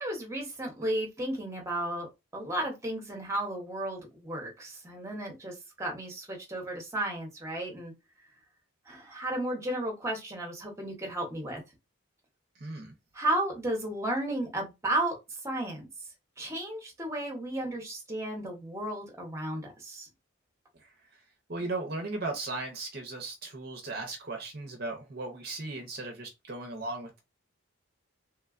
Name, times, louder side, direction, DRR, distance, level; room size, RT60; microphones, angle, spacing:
voice 1, 0.0-2.1 2.3-7.9 8.9-11.6 13.1-15.2 15.4-15.9 16.4-20.1, right 1 dB, 15° right, 0.8 m, -33 dB
voice 2, 12.6-12.9 20.8-20.9 21.5-27.2, right 2 dB, 50° right, 0.6 m, -37 dB
3.2 x 2.2 x 2.3 m
head